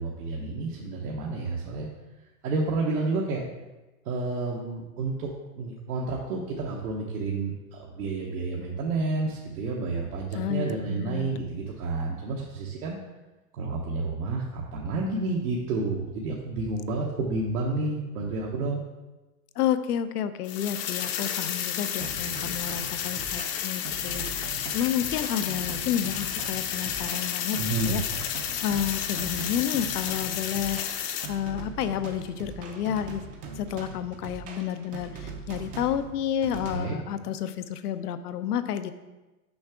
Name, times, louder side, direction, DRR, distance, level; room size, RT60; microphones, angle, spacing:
voice 1, 0.0-1.9 2.4-3.4 4.0-5.3 5.5-13.0 13.6-18.8 27.6-28.0 36.7-37.0, right 3 dB, 80° right, -3 dB, 1.2 m, -30 dB
voice 2, 10.4-11.3 19.6-27.6 27.9-28.0 28.3-30.8 31.3-33.2 33.6-38.9, left 9 dB, 85° left, 11 dB, 0.7 m, -30 dB
sound 1, 20.4-31.3, left 9 dB, 40° left, 0.6 m, -31 dB
sound 2, 22.0-36.8, right 4 dB, 20° right, 0.4 m, -41 dB
6.3 x 5.7 x 3.6 m, 1.1 s
hypercardioid pair, 135°, 45 cm